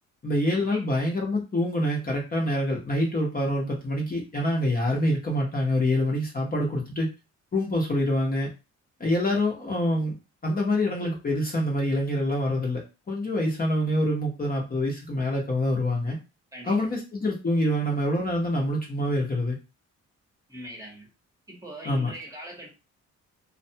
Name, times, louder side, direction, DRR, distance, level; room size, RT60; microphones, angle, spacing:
voice 1, 0.2-7.1 7.5-8.5 9.0-10.2 10.4-12.8 13.1-16.2 16.6-19.6 21.8-22.1, left 1 dB, 30° left, -1 dB, 0.9 m, -26 dB
voice 2, 20.5-21.1 21.5-22.7, equal, 10° right, -1 dB, 1.0 m, -41 dB
2.4 x 2.2 x 2.7 m, 0.29 s
cardioid pair, 90°, 30 cm